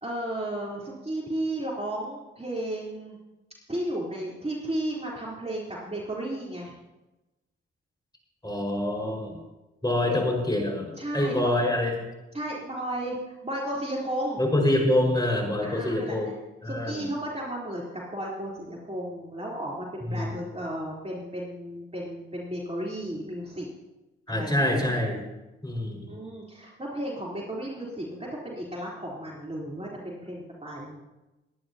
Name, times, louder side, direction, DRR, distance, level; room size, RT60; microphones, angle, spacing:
voice 1, 0.0-3.2 3.7-6.8 11.0-11.5 12.3-14.4 15.6-16.2 16.7-23.7 24.3-24.7 26.1-31.0, right 1 dB, 20° right, -4 dB, 3.7 m, -34 dB
voice 2, 8.4-9.4 9.8-10.9 11.1-12.0 14.4-16.3 16.6-17.1 20.0-20.4 24.3-25.2 25.6-26.1, left 1 dB, 15° left, 0 dB, 5.3 m, -26 dB
21.0 x 10.5 x 2.9 m, 1.0 s
hypercardioid pair, 45°, 30 cm